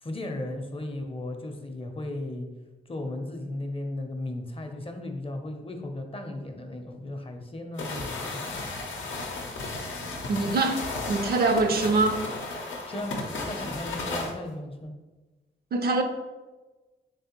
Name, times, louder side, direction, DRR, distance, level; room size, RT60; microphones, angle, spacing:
voice 1, 0.0-2.5 2.9-8.7 12.9-14.9, left 1 dB, 30° left, 5 dB, 0.6 m, -36 dB
sound 1, 7.8-14.3, left 3 dB, 80° left, 0.6 m, -34 dB
voice 2, 10.3-10.8 11.1-12.2 15.7-16.0, right 3 dB, 50° right, 6 dB, 0.4 m, -23 dB
3.3 x 3.3 x 2.9 m, 1.2 s
supercardioid pair, 45°, 20 cm